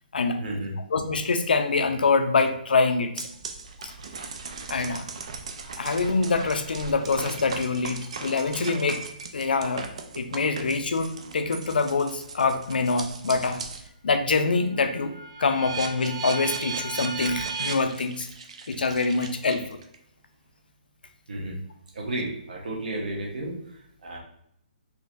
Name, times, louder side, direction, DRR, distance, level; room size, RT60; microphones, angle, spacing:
voice 1, 0.4-0.7 21.3-21.6 21.9-24.2, right 1 dB, 65° right, -2 dB, 1.1 m, -33 dB
voice 2, 0.9-3.3 3.8-3.9 4.7-5.1 5.8-9.0 9.3-9.9 10.2-13.6 14.0-15.1 15.4-18.3 18.7-19.6, left 4 dB, 90° left, 7 dB, 0.5 m, -25 dB
sound 1, 3.2-13.9 14.3-19.9, right 5 dB, 40° right, 0.4 m, -37 dB
3.8 x 2.9 x 2.5 m, 0.73 s
hypercardioid pair, 175°, 5 cm